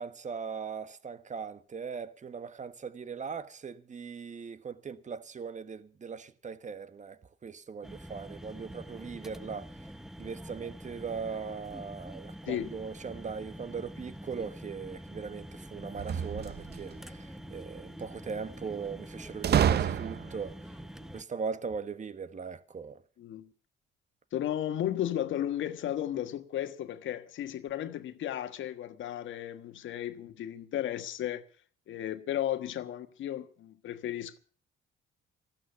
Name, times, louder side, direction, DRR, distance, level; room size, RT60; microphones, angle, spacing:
voice 1, 0.0-9.7 10.2-20.7 21.1-23.0, right 5 dB, 40° right, 1.4 m, -39 dB
sound 1, 7.8-21.2, equal, ahead, 0.9 m, -46 dB
sound 2, 15.9-17.0 19.4-20.5, right 9 dB, 55° right, 0.7 m, -28 dB
voice 2, 23.2-23.5 24.3-31.4 31.9-34.4, left 11 dB, 75° left, 1.5 m, -34 dB
15.0 x 13.0 x 5.8 m
cardioid pair, 90°, 20 cm